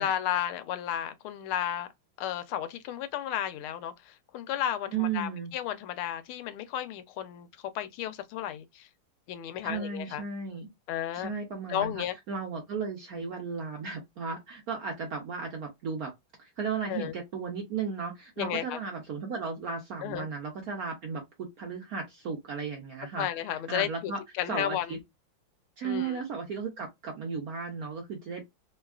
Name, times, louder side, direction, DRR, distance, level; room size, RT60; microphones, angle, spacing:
voice 1, 0.0-1.9 2.2-7.5 7.7-8.9 9.3-10.2 10.9-11.3 11.7-12.1 16.9-17.1 18.4-18.8 20.0-20.3 23.2-24.1 24.4-25.0 25.8-26.2, left 11 dB, 85° left, 1.4 m, -33 dB
voice 2, 4.9-5.5 9.6-10.7 11.1-16.1 16.4-24.2 24.5-25.0 25.8-28.4, right 5 dB, 65° right, 0.9 m, -35 dB
3.5 x 2.3 x 2.3 m
omnidirectional pair, 2.3 m